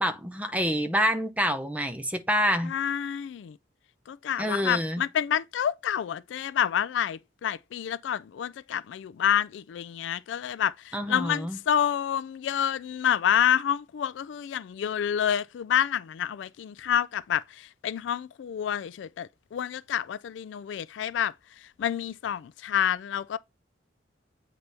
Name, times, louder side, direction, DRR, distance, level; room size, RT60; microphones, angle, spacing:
voice 1, 0.0-2.7 4.4-5.0 10.9-11.6, equal, 10° right, 0.7 m, -27 dB
voice 2, 2.6-3.6 4.1-21.3 21.8-23.4, left 9 dB, 75° left, 0.3 m, -28 dB
8.1 x 4.1 x 3.4 m
head